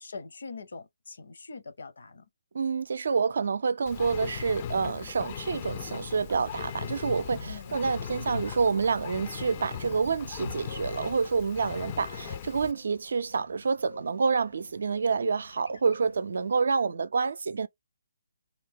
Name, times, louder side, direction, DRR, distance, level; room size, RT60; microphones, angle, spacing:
voice 1, 0.0-2.3 7.5-7.8, left 4 dB, 65° left, 0.7 m, -43 dB
voice 2, 2.5-17.7, right 5 dB, 60° right, 0.4 m, -28 dB
Engine, 3.9-12.7, left 9 dB, 30° left, 0.4 m, -39 dB
sound 1, 5.4-16.5, left 1 dB, 90° left, 1.2 m, -48 dB
2.8 x 2.2 x 3.5 m
figure-of-eight pair, 140°, 0 cm